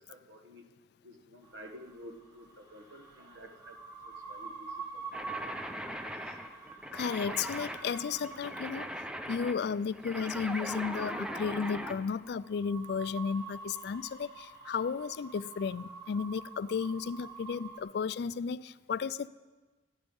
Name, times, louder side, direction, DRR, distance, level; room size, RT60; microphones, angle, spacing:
voice 1, 0.1-0.6 1.0-3.8 4.0-5.5, equal, 75° right, 1.3 m, -51 dB
sound 1, 1.4-17.8, right 4 dB, 25° right, 2.6 m, -47 dB
sound 2, 5.1-12.0, equal, 5° right, 0.6 m, -40 dB
voice 2, 6.9-8.9 9.3-19.3, left 6 dB, 60° left, 0.3 m, -34 dB
14.0 x 11.0 x 5.4 m
head